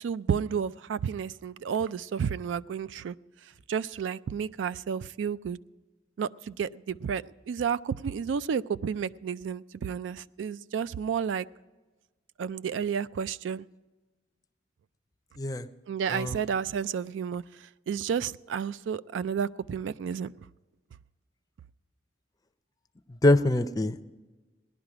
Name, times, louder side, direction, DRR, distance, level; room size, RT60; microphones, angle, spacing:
voice 1, 0.0-3.1 3.7-5.6 6.2-11.5 12.4-13.7 15.9-20.3, right 7 dB, 85° right, 17 dB, 0.3 m, -31 dB
voice 2, 16.1-16.4 23.2-24.0, left 1 dB, 20° left, 11 dB, 0.5 m, -24 dB
17.5 x 11.0 x 4.9 m, 1.2 s
head